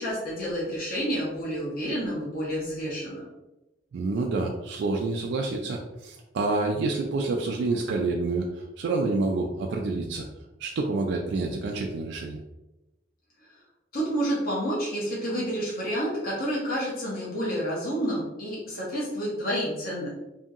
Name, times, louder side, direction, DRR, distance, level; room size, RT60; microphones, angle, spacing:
voice 1, 0.0-3.3 13.9-20.1, equal, 55° left, -6 dB, 0.9 m, -29 dB
voice 2, 3.9-10.3 10.6-12.4, right 3 dB, 70° right, 1 dB, 0.3 m, -28 dB
2.7 x 2.7 x 2.4 m, 0.97 s
head